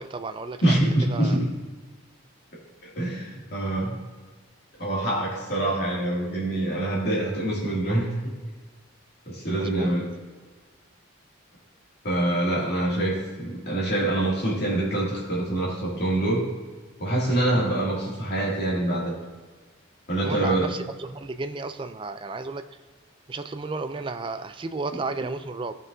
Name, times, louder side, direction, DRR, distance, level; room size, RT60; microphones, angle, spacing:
voice 1, 0.0-0.8 1.1-1.4 9.6-10.0 20.2-22.6 23.3-25.7, right 3 dB, 25° right, 9 dB, 0.3 m, -33 dB
voice 2, 0.6-1.5 2.8-4.0 4.8-8.1 9.3-10.1 12.0-16.5 17.0-19.2 20.1-20.7, right 1 dB, 50° left, -5 dB, 2.5 m, -25 dB
14.5 x 5.6 x 2.7 m, 1.4 s
head